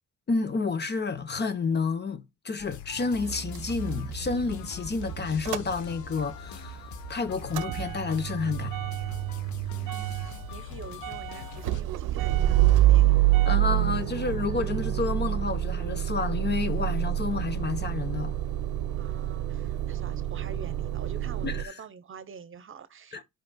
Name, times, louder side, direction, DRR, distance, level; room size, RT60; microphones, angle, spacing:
voice 1, 0.3-8.7 13.5-18.3 21.4-21.8 23.1-23.2, left 4 dB, 35° left, 0.9 m, -30 dB
sound 1, 2.6-11.8, left 10 dB, 70° left, 0.8 m, -43 dB
Motor vehicle (road) / Engine starting / Idling, 3.2-6.3 6.7-21.6, right 14 dB, 85° right, 0.6 m, -27 dB
voice 2, 9.6-13.2 19.0-23.2, right 6 dB, 45° right, 0.8 m, -46 dB
12.5 x 5.2 x 2.3 m
cardioid pair, 90°, 30 cm